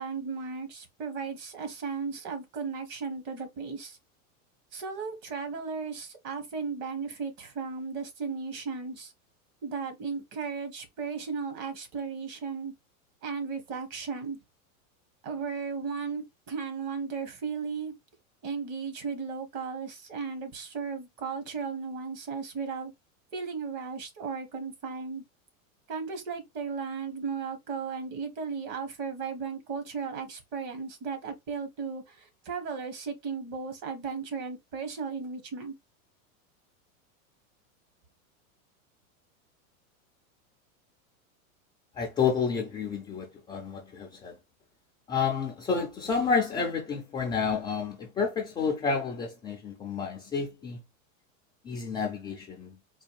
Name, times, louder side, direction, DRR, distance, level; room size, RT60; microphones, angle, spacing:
voice 1, 0.0-4.0 4.7-9.1 9.6-12.7 13.2-14.4 15.2-17.9 18.4-22.9 23.3-25.2 25.9-35.7, right 5 dB, 45° right, 1.5 m, -35 dB
voice 2, 42.0-44.3 45.1-50.8 51.6-52.8, left 5 dB, 10° left, 0.3 m, -30 dB
4.1 x 2.3 x 3.2 m
supercardioid pair, 140°, 41 cm